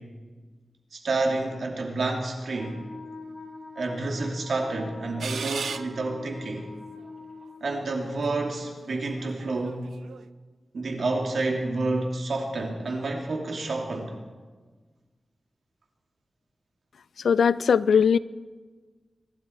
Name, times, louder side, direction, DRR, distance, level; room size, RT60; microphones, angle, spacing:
voice 1, 0.9-2.8 3.8-6.7 7.6-9.9 10.7-14.2, right 2 dB, 65° right, 1 dB, 2.8 m, -29 dB
Wind instrument woodwind instrument, 2.5-7.7, left 3 dB, 60° left, 4.9 m, -43 dB
sound 1, 5.2-6.3 7.1-7.2 7.9-10.3, right 6 dB, 90° right, 0.5 m, -37 dB
voice 2, 17.2-18.2, left 6 dB, 85° left, 18 dB, 0.4 m, -19 dB
24.0 x 12.0 x 4.6 m, 1.4 s
wide cardioid pair, 110°, 0 cm